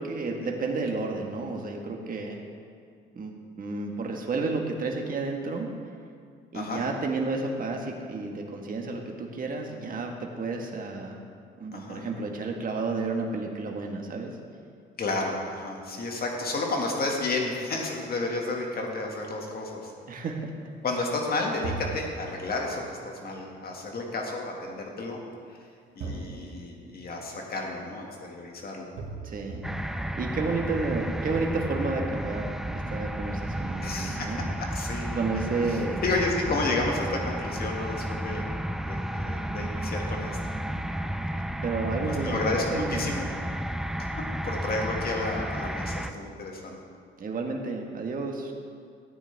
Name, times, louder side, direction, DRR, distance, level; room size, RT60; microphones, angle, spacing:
voice 1, 0.0-2.4 3.1-5.7 6.5-11.2 11.6-14.4 20.1-20.5 29.2-29.7 30.1-34.5 35.1-36.0 41.6-43.1 47.2-48.5, right 3 dB, 45° right, 1 dB, 1.5 m, -31 dB
voice 2, 11.7-12.0 15.0-19.9 20.8-25.2 26.0-28.9 33.8-34.3 34.7-38.4 38.8-40.4 42.1-43.3 44.2-46.8, left 2 dB, 50° left, 0 dB, 2.0 m, -31 dB
sound 1, 18.0-20.1 21.6-24.2 26.0-28.3 29.0-29.9, right 3 dB, 80° right, 1.9 m, -42 dB
sound 2, 29.6-46.1, right 1 dB, ahead, 0.4 m, -32 dB
13.5 x 9.0 x 3.5 m, 2.2 s
cardioid pair, 90°, 20 cm